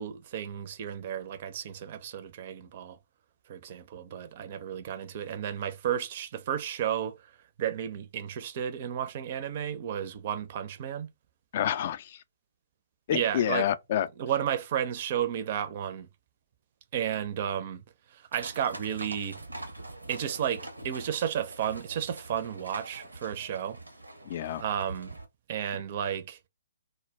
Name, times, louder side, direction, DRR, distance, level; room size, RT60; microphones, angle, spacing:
voice 1, 0.0-3.0 3.5-7.3 7.6-11.1 13.1-13.7 14.2-16.1 16.9-17.8 18.1-19.4 20.1-23.8 24.6-25.2 25.5-26.4, right 9 dB, 40° right, 0.4 m, -32 dB
voice 2, 11.5-12.2 13.1-14.1 24.3-24.6, left 10 dB, 45° left, 0.3 m, -28 dB
sound 1, 18.3-25.2, right 2 dB, 85° right, 0.6 m, -44 dB
2.1 x 2.0 x 3.3 m
figure-of-eight pair, 130°, 0 cm